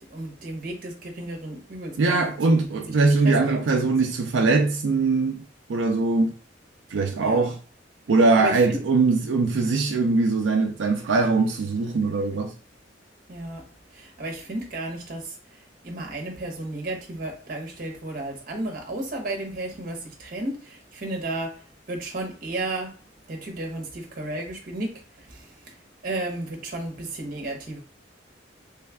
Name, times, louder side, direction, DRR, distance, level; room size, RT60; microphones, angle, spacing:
voice 1, 0.1-2.3 2.7-2.9 3.2-3.6 7.2-7.5 8.4-8.8 13.3-13.6 13.9-15.3 15.8-21.6 21.9-23.0 23.3-25.7 26.0-27.8, right 2 dB, 50° right, 1.0 m, -33 dB
voice 2, 2.0-5.4 5.7-6.3 6.9-7.6 8.1-12.5, right 3 dB, 85° right, 0.4 m, -21 dB
3.2 x 2.3 x 3.4 m
head